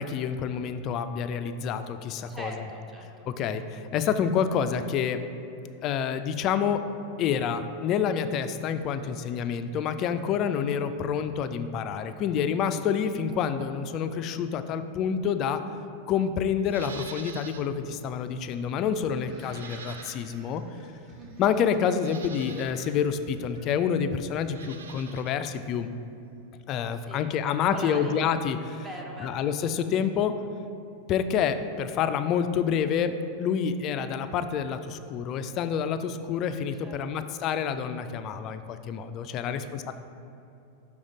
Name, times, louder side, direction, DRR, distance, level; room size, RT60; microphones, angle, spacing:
voice 1, 0.0-2.5 3.3-5.2 5.8-6.8 7.2-15.6 16.1-20.6 21.4-25.9 26.7-28.8 29.2-30.4 31.1-39.9, left 7 dB, 35° left, 10 dB, 0.3 m, -28 dB
voice 2, 2.3-3.3 21.2-21.5 26.9-28.2 28.8-29.4 36.8-37.2 39.4-39.9, right 1 dB, 15° right, 0 dB, 0.8 m, -42 dB
Livestock farm animals working animals, 16.6-17.7 18.1-18.2 19.4-20.5 21.3-21.4 22.0-22.8 24.4-25.3 25.6-25.7, right 6 dB, 65° right, 0.3 m, -45 dB
sound 1, 17.7-23.9, equal, 40° right, 1.1 m, -53 dB
6.3 x 3.5 x 5.0 m, 2.7 s
figure-of-eight pair, 90°, 0 cm